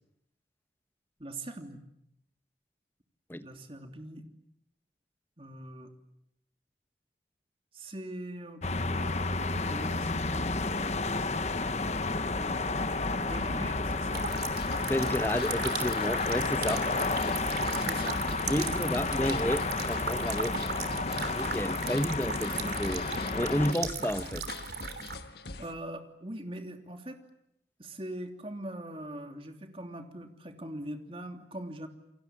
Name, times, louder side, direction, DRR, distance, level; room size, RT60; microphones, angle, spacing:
voice 1, 1.2-1.8 3.4-4.2 5.4-5.9 7.7-8.6 8.9-9.2 9.6-10.5 12.3-12.9 13.2-14.3 17.8-18.2 18.6-18.8 20.4-20.7 25.6-27.2 27.8-31.9, right 1 dB, 30° right, 5 dB, 3.1 m, -42 dB
sound 1, 8.6-23.7, left 3 dB, 40° left, 1.1 m, -31 dB
sound 2, 14.1-25.2, right 6 dB, 65° right, 3.0 m, -38 dB
sound 3, 14.4-25.7, left 3 dB, 65° left, 1.6 m, -45 dB
voice 2, 14.8-16.8 18.5-20.5 21.3-24.5, equal, 10° left, 10 dB, 1.3 m, -31 dB
29.0 x 23.5 x 8.7 m, 0.79 s
head